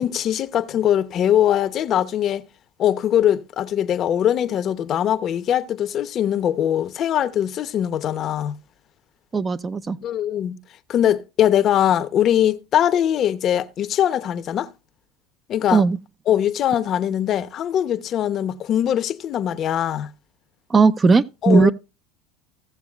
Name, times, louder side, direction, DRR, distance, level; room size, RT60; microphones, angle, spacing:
voice 1, 0.0-2.5 2.8-8.6 10.0-10.6 10.9-14.7 15.5-15.8 16.3-20.1 21.4-21.7, left 10 dB, 45° left, 0.8 m, -21 dB
voice 2, 9.3-10.0 15.7-16.0 20.7-21.7, right 4 dB, 25° right, 0.6 m, -17 dB
17.0 x 7.0 x 2.4 m
supercardioid pair, 105°, 0 cm